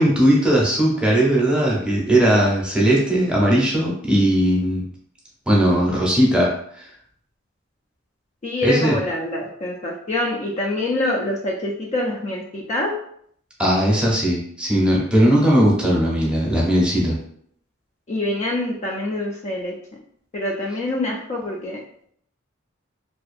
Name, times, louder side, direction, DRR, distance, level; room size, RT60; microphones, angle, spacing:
voice 1, 0.0-4.8 5.5-6.9 8.6-9.0 13.6-17.2, right 1 dB, 5° right, -4 dB, 0.6 m, -18 dB
voice 2, 8.4-12.9 18.1-19.7 20.3-21.8, left 2 dB, 35° left, -2 dB, 0.3 m, -25 dB
2.5 x 2.3 x 2.4 m, 0.66 s
head